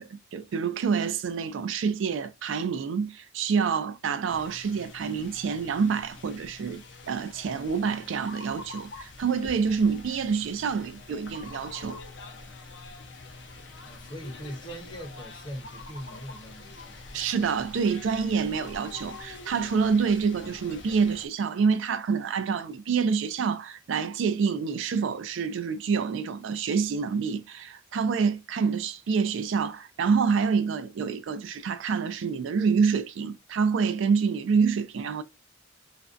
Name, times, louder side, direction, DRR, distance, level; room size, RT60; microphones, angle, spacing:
voice 1, 0.0-12.0 17.1-35.2, right 5 dB, 75° right, 0.3 m, -27 dB
sound 1, 4.3-21.3, left 3 dB, 65° left, 0.5 m, -45 dB
voice 2, 13.8-17.3, equal, 25° left, 0.6 m, -41 dB
2.5 x 2.1 x 2.4 m
head